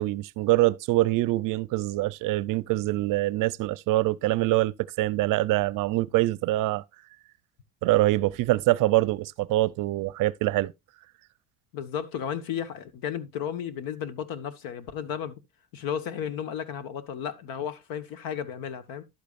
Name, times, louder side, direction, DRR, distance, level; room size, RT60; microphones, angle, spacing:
voice 1, 0.0-6.8 7.8-10.7, right 17 dB, 60° right, 0.6 m, -24 dB
voice 2, 11.7-15.4 15.7-19.0, left 8 dB, 70° left, 1.4 m, -33 dB
11.5 x 8.4 x 2.5 m
cardioid pair, 115°, 37 cm